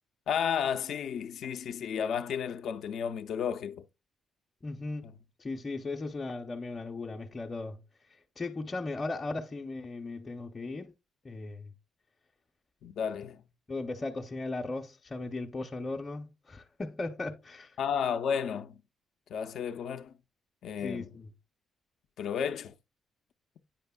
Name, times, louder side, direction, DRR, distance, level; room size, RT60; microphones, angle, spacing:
voice 1, 0.3-3.8 12.8-13.4 17.8-18.8 19.3-20.1 20.6-21.1 22.2-22.7, left 7 dB, 70° left, 0.5 m, -32 dB
voice 2, 4.6-5.1 5.4-7.8 8.4-10.9 11.2-11.7 13.7-17.8 20.8-21.3, left 3 dB, 25° left, 0.6 m, -37 dB
8.9 x 5.3 x 2.2 m
cardioid pair, 90°, 0 cm